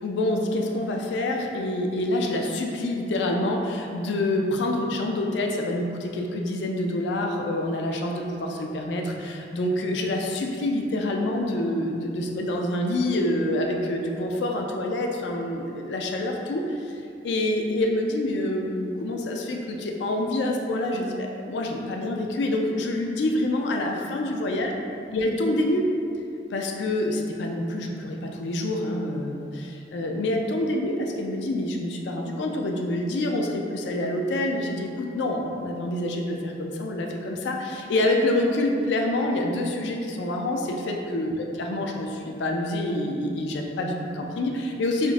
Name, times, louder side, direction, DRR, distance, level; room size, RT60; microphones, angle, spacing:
voice 1, 0.0-16.9 17.2-24.7 25.1-25.9 26.5-45.1, left 1 dB, 80° left, 2 dB, 0.3 m, -27 dB
3.7 x 2.5 x 2.3 m, 2.5 s
head